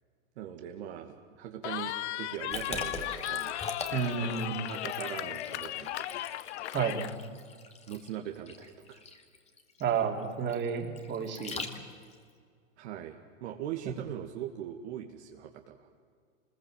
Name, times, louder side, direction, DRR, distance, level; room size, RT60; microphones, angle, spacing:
voice 1, 0.4-3.6 4.2-4.3 4.6-6.2 7.9-9.0 12.8-15.9, right 10 dB, 60° right, 2 dB, 2.1 m, -41 dB
Cheering, 1.6-7.1, left 14 dB, 60° left, 0.9 m, -36 dB
Liquid, 2.5-12.1, left 4 dB, 15° left, 2.1 m, -42 dB
voice 2, 3.9-4.6 6.7-7.2 9.8-11.6, right 6 dB, 30° right, 2 dB, 3.1 m, -31 dB
25.5 x 21.0 x 7.5 m, 2.1 s
hypercardioid pair, 115°, 39 cm